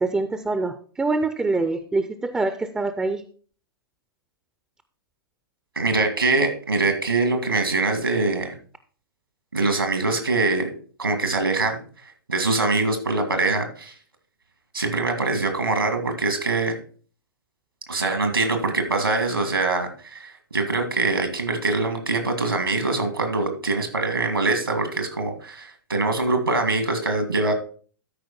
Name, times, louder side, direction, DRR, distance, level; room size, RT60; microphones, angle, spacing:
voice 1, 0.0-3.2, right 3 dB, 5° right, 10 dB, 0.5 m, -25 dB
voice 2, 5.8-8.5 9.5-10.7 11.0-11.8 12.3-13.9 14.7-16.8 17.9-27.5, right 3 dB, 85° right, 6 dB, 2.2 m, -23 dB
13.0 x 5.0 x 4.2 m, 0.42 s
figure-of-eight pair, 110°, 12 cm